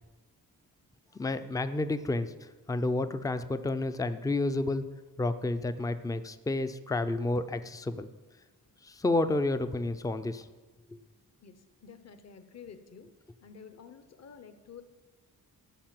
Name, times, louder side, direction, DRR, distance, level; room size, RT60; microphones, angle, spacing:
voice 1, 1.2-4.8 5.2-8.1 8.8-10.5 10.9-11.0, left 2 dB, 10° left, 11 dB, 0.5 m, -30 dB
voice 2, 11.4-13.1 13.4-14.8, left 6 dB, 40° left, 10 dB, 1.0 m, -50 dB
13.5 x 5.8 x 7.6 m, 1.2 s
wide cardioid pair, 125°, 38 cm